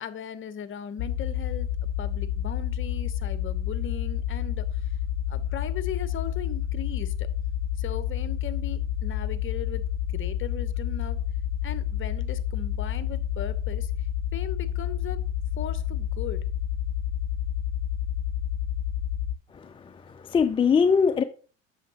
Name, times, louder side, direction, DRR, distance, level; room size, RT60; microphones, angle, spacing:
voice 1, 0.0-5.0 5.3-7.3 7.8-9.8 10.1-11.2 11.6-14.1 14.3-15.2 15.6-16.4, left 9 dB, 35° left, 0.8 m, -38 dB
sound 1, 1.0-19.4, left 10 dB, 65° left, 0.6 m, -29 dB
voice 2, 19.5-21.2, left 6 dB, 15° left, 0.4 m, -23 dB
7.7 x 6.5 x 2.8 m
hypercardioid pair, 80°, 37 cm